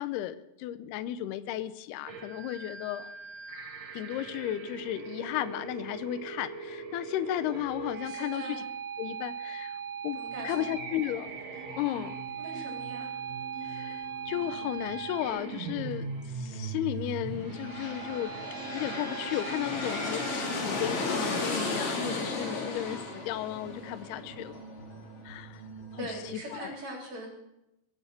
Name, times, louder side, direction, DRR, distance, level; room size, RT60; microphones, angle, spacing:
voice 1, 0.0-3.1 3.9-8.6 9.0-9.8 10.0-10.2 10.4-11.3 11.8-12.2 13.6-16.1 16.3-18.3 18.7-24.6 25.3-25.6 25.9-26.1 26.5-26.7, left 13 dB, 85° left, 12 dB, 2.3 m, -34 dB
sound 1, 2.1-21.5, right 6 dB, 85° right, 4.9 m, -40 dB
voice 2, 8.0-8.6 10.1-10.7 12.4-13.1 26.0-27.3, right 1 dB, 40° right, -1 dB, 4.6 m, -41 dB
sound 2, 10.3-26.3, right 2 dB, 60° left, 5.4 m, -47 dB
sound 3, 17.3-25.0, left 3 dB, 40° left, 2.7 m, -35 dB
22.5 x 8.6 x 6.5 m, 0.89 s
omnidirectional pair, 5.4 m